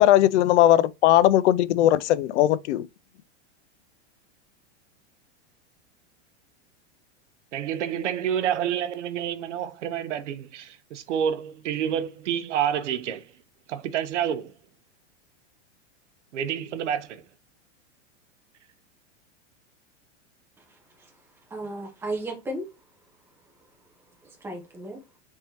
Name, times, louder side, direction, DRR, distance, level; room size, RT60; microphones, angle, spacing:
voice 1, 0.0-2.8, left 13 dB, 75° left, 0.5 m, -19 dB
voice 2, 7.5-13.3 13.7-14.5 16.3-17.2, right 9 dB, 85° right, 0.8 m, -28 dB
voice 3, 20.7-21.1 21.5-22.7 24.2-25.0, right 1 dB, 5° right, 0.9 m, -35 dB
4.1 x 3.6 x 2.8 m
supercardioid pair, 150°, 35 cm